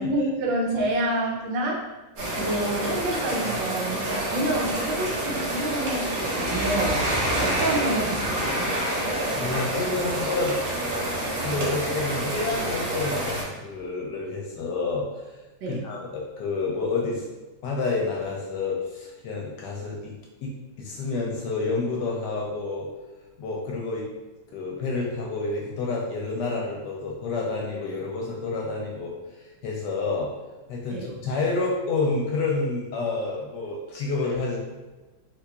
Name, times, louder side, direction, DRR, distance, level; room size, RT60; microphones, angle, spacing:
voice 1, 0.0-1.8 2.4-7.0 7.4-8.7 15.6-15.9 30.9-31.1, right 1 dB, 75° right, -2 dB, 1.3 m, -28 dB
sound 1, 2.2-13.4, right 1 dB, 55° right, 0.9 m, -27 dB
voice 2, 9.3-10.6 11.1-15.1 15.7-17.2 17.6-20.1 20.4-20.5 20.8-22.9 23.4-24.1 24.5-29.1 29.6-30.3 30.7-34.6, left 3 dB, 70° left, -2 dB, 1.1 m, -29 dB
3.9 x 2.8 x 2.3 m, 1.2 s
omnidirectional pair, 2.1 m